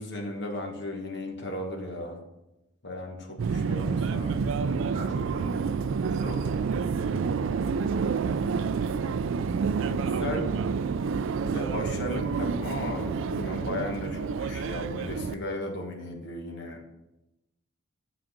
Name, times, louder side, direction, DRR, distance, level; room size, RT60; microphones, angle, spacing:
voice 1, 0.0-2.2 2.8-4.6 9.9-10.6 11.5-16.8, left 1 dB, 50° left, 1 dB, 1.3 m, -35 dB
Subway metro underground, 3.4-15.3, right 5 dB, 60° right, 0.3 m, -28 dB
voice 2, 4.9-5.5 6.0-6.7, right 2 dB, 30° right, -3 dB, 2.0 m, -41 dB
7.4 x 6.1 x 5.1 m, 0.94 s
head